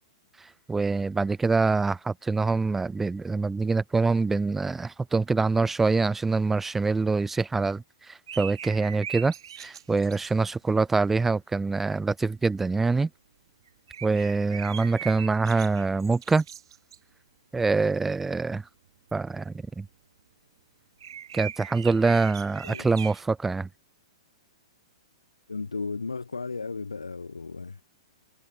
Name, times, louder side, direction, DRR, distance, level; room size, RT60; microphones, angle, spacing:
voice 1, 0.7-9.3 9.6-13.1 14.0-16.4 17.5-18.6 19.1-19.9 21.3-23.7, right 4 dB, 10° right, 0.5 m, -25 dB
sound 1, 8.3-10.5 13.7-17.0 19.1-19.2 21.0-23.2, right 9 dB, 60° right, 4.0 m, -41 dB
voice 2, 25.5-27.8, left 4 dB, 80° left, 4.3 m, -35 dB
figure-of-eight pair, 110°, 3 cm